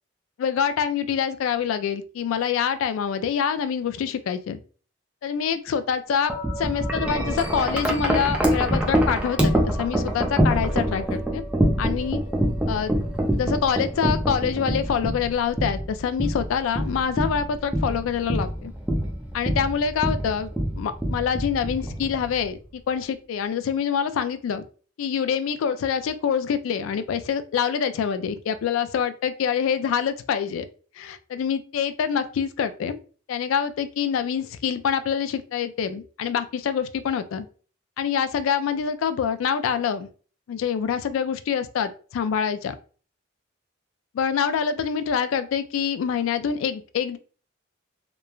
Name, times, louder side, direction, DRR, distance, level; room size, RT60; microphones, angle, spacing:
voice 1, 0.4-4.6 5.2-11.4 11.8-12.2 12.7-12.9 13.4-18.7 19.3-20.5 20.8-22.6 22.9-24.6 25.0-30.7 31.0-33.0 33.3-37.5 38.0-40.1 40.5-42.7 44.1-47.2, left 7 dB, 90° left, 11 dB, 0.3 m, -26 dB
Wind chime, 6.3-22.5, equal, 5° right, 0.4 m, -25 dB
3.0 x 2.2 x 2.3 m, 0.40 s
head